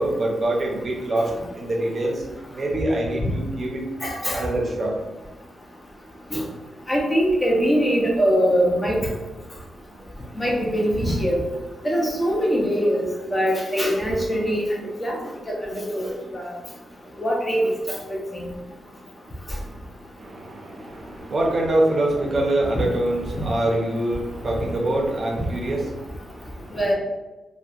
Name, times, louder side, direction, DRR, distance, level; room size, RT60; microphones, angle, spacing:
voice 1, 0.0-2.2 2.5-3.8 4.3-5.0 20.2-26.8, right 1 dB, 45° right, -1 dB, 0.5 m, -25 dB
voice 2, 4.0-4.4 6.3-6.4 6.9-9.0 10.4-11.4 11.8-13.1 13.3-14.6 15.0-15.1 15.5-16.1 16.3-16.4 17.2-17.6 18.3-18.5 26.7-26.9, equal, 20° left, -2 dB, 0.6 m, -22 dB
2.7 x 2.1 x 2.4 m, 1.1 s
cardioid pair, 90°, 0 cm